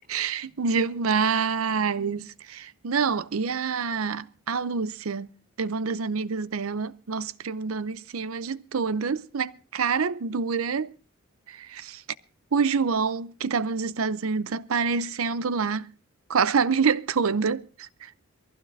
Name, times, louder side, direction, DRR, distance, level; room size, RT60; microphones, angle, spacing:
voice 1, 0.1-5.3 5.6-10.9 11.5-12.0 12.5-15.9 16.3-18.1, right 5 dB, 90° right, 0.6 m, -27 dB
23.0 x 15.5 x 2.6 m
head